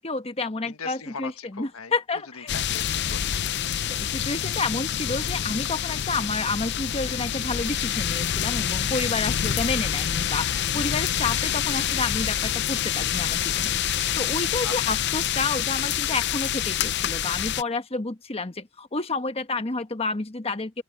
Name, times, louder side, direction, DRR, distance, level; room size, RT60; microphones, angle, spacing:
voice 1, 0.0-2.5 3.9-10.5 10.7-13.7 14.2-20.8, left 3 dB, 30° left, 1.2 m, -30 dB
voice 2, 0.7-3.6 14.6-15.0, left 5 dB, 90° left, 1.4 m, -40 dB
sound 1, 2.5-17.6, left 10 dB, 55° left, 0.5 m, -27 dB
sound 2, 5.4-10.8, right 1 dB, 45° right, 3.3 m, -54 dB
sound 3, 7.4-8.5 9.4-10.5 11.5-12.6 13.5-14.6, equal, ahead, 0.7 m, -41 dB
open air
head